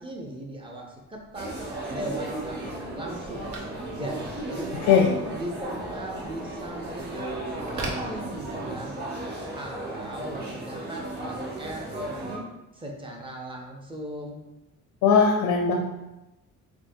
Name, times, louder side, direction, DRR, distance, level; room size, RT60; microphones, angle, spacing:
voice 1, 0.0-1.5 1.9-3.5 3.9-4.7 5.0-7.3 7.7-9.0 9.5-12.5 12.7-14.4, right 1 dB, 15° right, 0 dB, 0.5 m, -38 dB
Telephone, 1.1-8.9, right 2 dB, 70° right, 0.8 m, -43 dB
sound 1, 1.3-12.4, right 2 dB, 35° right, 0.9 m, -35 dB
voice 2, 15.0-15.7, left 6 dB, 90° left, 0 dB, 0.6 m, -19 dB
3.5 x 3.1 x 2.6 m, 0.97 s
cardioid pair, 150°, 31 cm